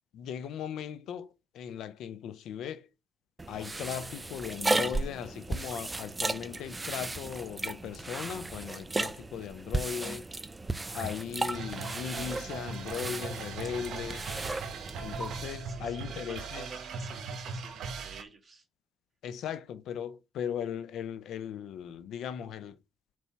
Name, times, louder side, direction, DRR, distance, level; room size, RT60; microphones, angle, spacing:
voice 1, 0.1-2.9 3.5-10.3 10.9-14.3 15.0-16.7 19.2-22.8, left 8 dB, 80° left, 0.6 m, -38 dB
sound 1, 3.4-15.5, right 2 dB, 20° right, 0.4 m, -35 dB
sound 2, 11.5-18.2, right 5 dB, 75° right, 1.3 m, -39 dB
voice 2, 15.5-18.6, right 4 dB, 35° right, 1.8 m, -50 dB
4.7 x 4.2 x 5.6 m
cardioid pair, 90°, 0 cm